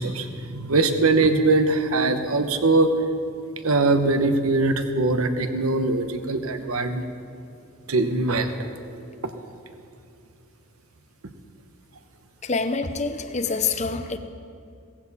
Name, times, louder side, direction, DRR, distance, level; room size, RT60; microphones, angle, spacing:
voice 1, 0.0-2.9 3.6-7.0 7.9-8.7, right 3 dB, 80° right, 8 dB, 1.0 m, -22 dB
voice 2, 12.4-14.2, left 4 dB, 30° left, 9 dB, 0.7 m, -26 dB
17.5 x 15.5 x 4.2 m, 2.5 s
head